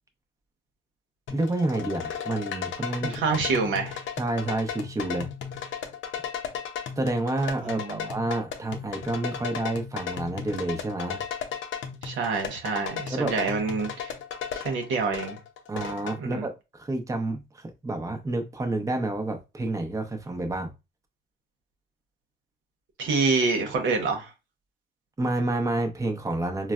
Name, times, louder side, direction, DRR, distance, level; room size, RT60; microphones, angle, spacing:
sound 1, 1.3-16.2, left 7 dB, 75° left, 0.6 m, -35 dB
voice 1, 1.3-3.4 4.2-5.3 7.0-11.2 13.1-13.4 15.7-20.7 25.2-26.7, right 2 dB, 15° right, 0.7 m, -29 dB
voice 2, 3.0-4.0 7.6-8.0 12.0-14.1 14.5-15.4 16.2-16.5 23.0-24.3, right 4 dB, 75° right, 0.8 m, -27 dB
3.9 x 2.0 x 2.4 m
cardioid pair, 90°, 20 cm